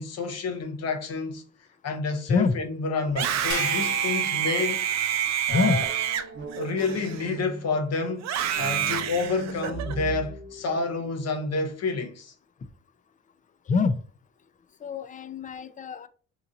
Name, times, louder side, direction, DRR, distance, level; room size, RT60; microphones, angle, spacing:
voice 1, 0.0-1.4 1.8-4.8 5.5-5.9 6.6-8.3 8.6-12.3, left 3 dB, 55° left, 0.8 m, -29 dB
Screaming, 3.1-7.6 8.2-9.9, right 10 dB, 60° right, 0.5 m, -28 dB
sound 1, 3.5-6.1, left 5 dB, 80° left, 0.7 m, -37 dB
voice 2, 5.5-5.8 10.8-11.2 13.7-14.0 14.8-16.1, left 4 dB, 25° left, 0.4 m, -25 dB
sound 2, 5.5-7.8 8.5-11.9, right 3 dB, 35° right, 1.1 m, -39 dB
2.9 x 2.5 x 3.7 m
cardioid pair, 90°, 30 cm